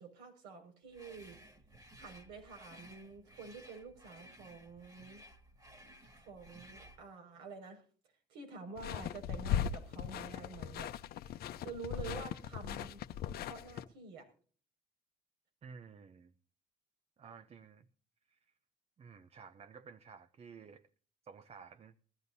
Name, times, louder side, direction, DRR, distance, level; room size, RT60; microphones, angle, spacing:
voice 1, 0.0-1.4 2.0-5.2 6.1-7.8 8.3-10.9 11.6-13.0 13.4-14.3, right 4 dB, 90° right, 5.8 m, -48 dB
sound 1, 0.9-7.0, equal, 20° right, 2.2 m, -57 dB
sound 2, 8.8-13.8, left 9 dB, 65° left, 0.8 m, -39 dB
voice 2, 15.6-16.3 17.2-17.9 18.3-18.4 19.0-20.9 21.2-21.9, right 6 dB, 40° right, 0.8 m, -53 dB
22.0 x 13.5 x 2.7 m
cardioid pair, 110°, 17 cm